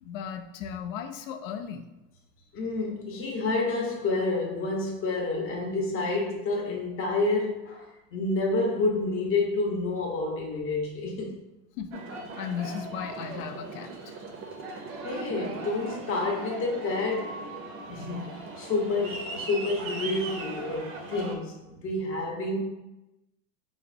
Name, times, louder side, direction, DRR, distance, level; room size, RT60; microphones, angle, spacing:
voice 1, 0.0-1.8 11.8-12.0 12.4-14.1, left 8 dB, 85° left, 6 dB, 0.5 m, -36 dB
voice 2, 2.5-11.4 15.0-17.4 17.9-22.6, left 3 dB, 35° left, -1 dB, 0.8 m, -29 dB
Aircraft, 11.9-21.3, right 2 dB, 35° right, 0.5 m, -39 dB
4.7 x 2.1 x 2.5 m, 1.0 s
supercardioid pair, 135°, 39 cm